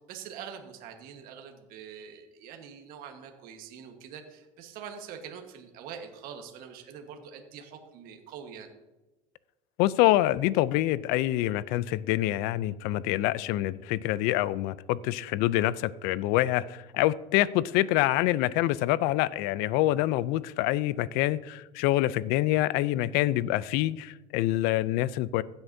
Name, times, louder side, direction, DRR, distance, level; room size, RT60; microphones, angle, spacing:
voice 1, 0.1-8.7, right 7 dB, 60° right, 4 dB, 1.4 m, -44 dB
voice 2, 9.8-25.4, left 15 dB, 70° left, 19 dB, 0.5 m, -26 dB
16.0 x 7.9 x 2.7 m, 1.1 s
supercardioid pair, 120°, 17 cm